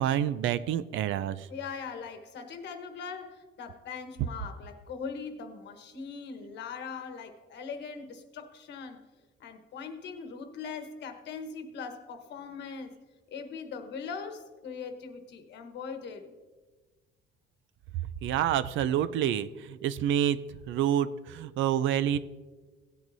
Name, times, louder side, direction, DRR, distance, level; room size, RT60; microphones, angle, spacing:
voice 1, 0.0-1.5 18.2-20.4 20.7-22.2, right 10 dB, 65° right, 15 dB, 0.5 m, -28 dB
voice 2, 1.5-9.0 9.4-13.0 13.3-16.3, left 5 dB, 55° left, 7 dB, 1.2 m, -41 dB
17.5 x 9.1 x 2.7 m, 1.3 s
cardioid pair, 165°, 21 cm